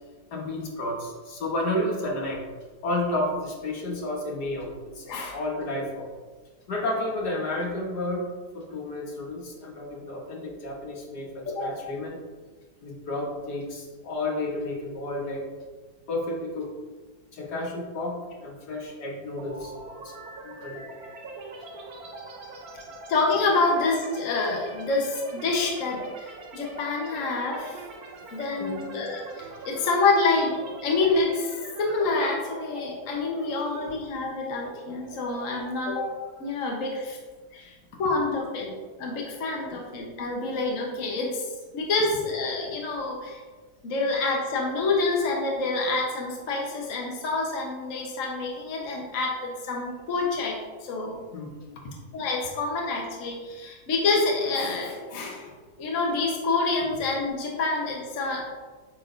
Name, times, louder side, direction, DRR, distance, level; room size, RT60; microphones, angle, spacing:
voice 1, 0.3-2.4 2.8-6.1 6.7-8.3 8.5-12.2 12.8-15.5 16.1-16.7 17.3-19.7 20.0-21.0 28.6-28.9 39.6-39.8 51.3-51.5 51.8-51.9, left 1 dB, 70° left, -1 dB, 1.8 m, -31 dB
voice 2, 5.1-5.4 11.4-11.7 23.1-27.8 28.3-36.1 36.4-37.2 37.5-37.7 38.0-43.4 43.8-51.2 52.1-55.5 55.8-58.5, left 3 dB, 50° left, -1 dB, 1.4 m, -27 dB
sound 1, 19.4-37.1, right 3 dB, 65° right, 1.4 m, -43 dB
9.0 x 6.5 x 2.6 m, 1.4 s
omnidirectional pair, 1.8 m